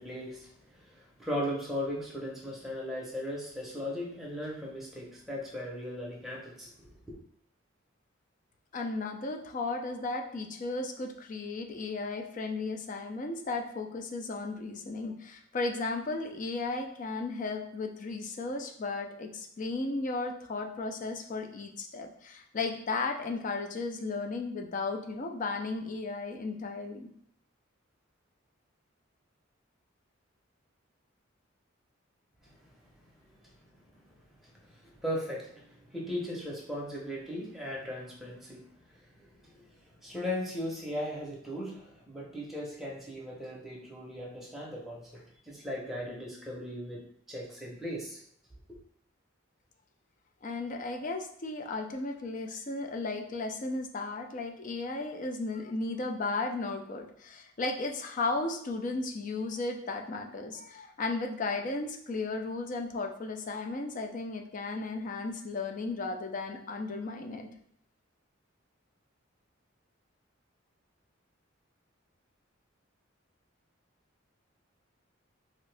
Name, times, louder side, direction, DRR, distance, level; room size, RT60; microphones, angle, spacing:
voice 1, 0.0-7.1 32.4-32.7 33.4-33.5 33.9-48.2, left 1 dB, ahead, -4 dB, 0.7 m, -38 dB
voice 2, 8.7-27.1 50.4-67.5, left 3 dB, 40° left, 4 dB, 0.4 m, -35 dB
2.8 x 2.6 x 3.3 m, 0.67 s
head